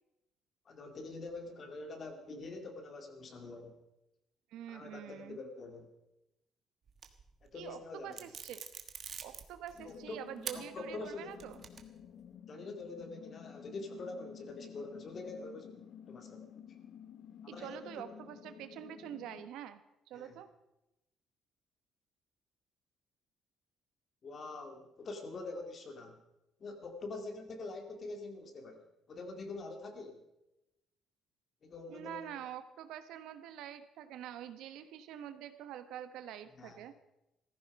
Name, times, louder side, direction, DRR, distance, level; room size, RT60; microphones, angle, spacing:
voice 1, 0.7-3.8 4.7-5.9 7.4-8.2 9.8-10.3 10.5-11.4 12.5-16.5 17.4-18.2 20.1-20.4 24.2-26.2 26.6-30.2 31.6-32.3 36.6-36.8, left 3 dB, 35° left, 5 dB, 2.2 m, -45 dB
voice 2, 4.5-5.4 7.5-8.6 9.2-11.6 17.5-19.8 20.1-20.5 31.9-36.9, right 10 dB, 80° right, 10 dB, 1.1 m, -46 dB
sound 1, 6.9-7.5 8.1-10.0 10.4-10.6 11.1-12.1, right 7 dB, 40° right, 1.3 m, -44 dB
sound 2, 9.7-19.5, left 8 dB, 55° left, 0.6 m, -52 dB
16.5 x 14.5 x 5.3 m, 0.91 s
cardioid pair, 155°, 0 cm